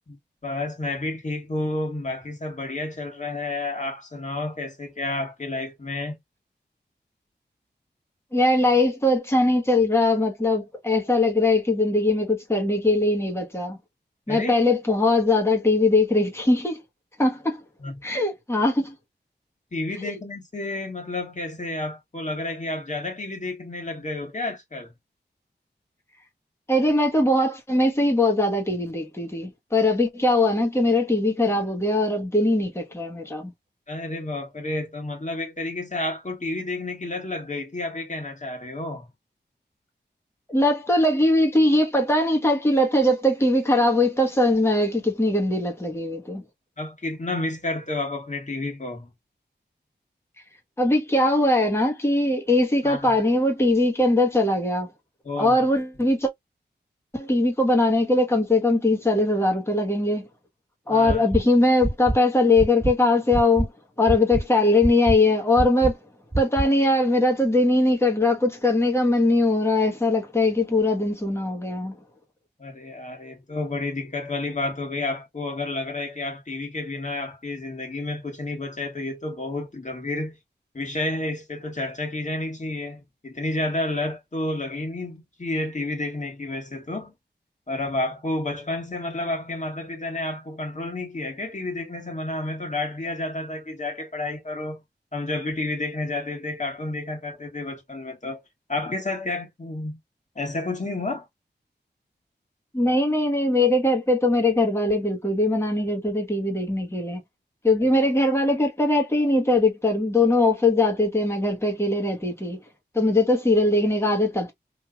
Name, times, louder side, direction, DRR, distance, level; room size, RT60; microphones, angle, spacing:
voice 1, 0.1-6.2 14.3-14.6 17.8-18.0 19.7-24.9 33.9-39.1 46.8-49.1 52.8-53.2 55.2-55.7 60.9-61.2 72.6-80.4 80.7-87.1 87.7-94.8 95.1-98.4 98.7-100.0 100.4-101.3, left 2 dB, 40° left, 1.7 m, -30 dB
voice 2, 8.3-13.8 14.3-16.8 17.2-17.6 18.0-18.9 20.0-20.2 26.7-33.5 40.5-46.4 50.8-54.9 55.4-56.3 57.1-60.3 60.9-63.7 64.0-66.0 66.4-71.9 102.7-107.2 107.6-112.6 112.9-114.5, left 2 dB, 15° left, 1.3 m, -21 dB
sound 1, 61.1-61.4 61.8-62.2 62.6-62.9 63.3-63.7 64.1-64.4 64.8-65.2 65.6-65.9 66.3-66.6, right 2 dB, 15° right, 0.3 m, -25 dB
3.2 x 2.8 x 2.4 m
cardioid pair, 50°, 19 cm